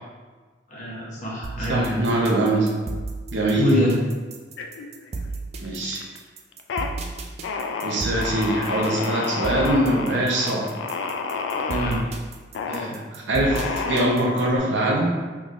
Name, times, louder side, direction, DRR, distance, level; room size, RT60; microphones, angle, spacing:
voice 1, 0.7-2.0 3.5-4.0 11.7-12.0, equal, 40° left, -5 dB, 0.9 m, -24 dB
sound 1, 1.4-14.6, right 3 dB, 35° right, 0.3 m, -34 dB
voice 2, 1.7-2.8 3.3-3.7 5.6-6.0 7.8-10.7 12.7-15.2, right 1 dB, 70° right, -2 dB, 0.7 m, -23 dB
sound 2, 4.6-5.3 5.6-6.2 6.5-6.9 7.4-12.0 12.5-12.9 13.5-14.5, left 4 dB, 70° left, 0.3 m, -30 dB
3.6 x 3.2 x 2.5 m, 1.4 s
head